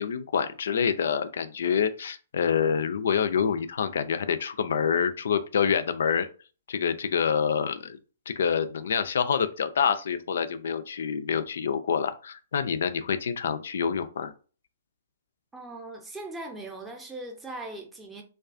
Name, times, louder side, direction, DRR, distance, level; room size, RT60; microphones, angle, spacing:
voice 1, 0.0-6.3 6.7-8.0 8.3-14.3, left 7 dB, 60° left, 0.3 m, -27 dB
voice 2, 15.5-18.2, right 2 dB, 10° right, 0.6 m, -39 dB
2.3 x 2.3 x 2.4 m
figure-of-eight pair, 120°, 0 cm